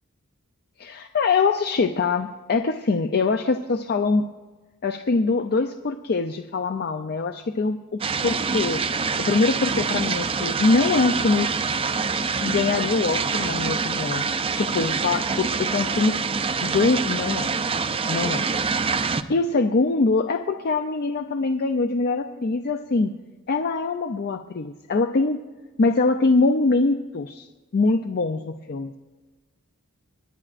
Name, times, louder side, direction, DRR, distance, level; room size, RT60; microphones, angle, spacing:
voice 1, 0.8-4.2 4.8-8.8 9.2-11.5 12.4-16.2 16.6-17.5 18.1-18.5 19.3-23.1 23.5-25.4 25.8-27.5 27.7-29.0, left 3 dB, 45° left, 7 dB, 0.4 m, -23 dB
sound 1, 8.0-19.2, right 5 dB, 25° right, 0.4 m, -25 dB
28.5 x 9.8 x 2.5 m, 1.3 s
head